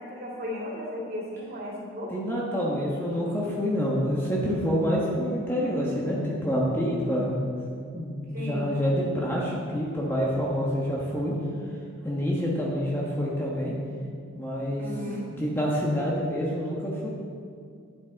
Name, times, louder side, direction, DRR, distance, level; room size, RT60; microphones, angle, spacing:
voice 1, 0.0-2.1 8.3-8.7 14.8-15.3, left 1 dB, 45° right, -6 dB, 2.9 m, -35 dB
voice 2, 2.1-7.4 7.9-11.3 12.0-13.7 14.3-14.8 15.3-17.1, equal, 10° left, -5 dB, 1.2 m, -27 dB
11.0 x 9.5 x 4.0 m, 2.3 s
head